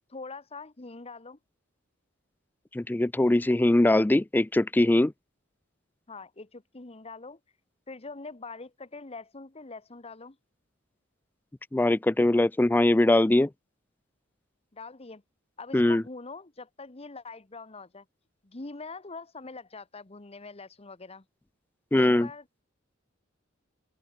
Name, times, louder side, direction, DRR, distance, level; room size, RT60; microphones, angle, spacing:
voice 1, 0.1-1.4 6.1-7.4 7.9-10.4 14.7-15.2 15.6-18.0 18.4-21.2 21.9-22.6, left 3 dB, 30° left, 1.2 m, -43 dB
voice 2, 2.7-5.1 11.7-13.5 15.7-16.0 21.9-22.3, left 1 dB, 10° left, 0.3 m, -22 dB
open air
head